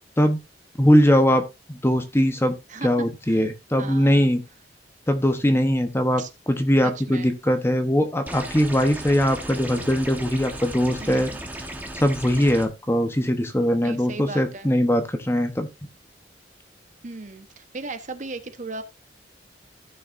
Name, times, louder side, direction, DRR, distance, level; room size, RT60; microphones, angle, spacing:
voice 1, 0.8-2.5 2.8-4.4 5.1-11.3 11.9-15.7, equal, 15° left, 0.9 m, -21 dB
voice 2, 2.7-3.4 3.8-4.3 6.2-6.3 6.8-7.3 11.0-11.3 13.8-14.7 17.0-18.8, right 3 dB, 40° right, 1.0 m, -37 dB
sound 1, 8.3-12.7, right 1 dB, 10° right, 1.2 m, -36 dB
15.5 x 6.4 x 2.6 m
head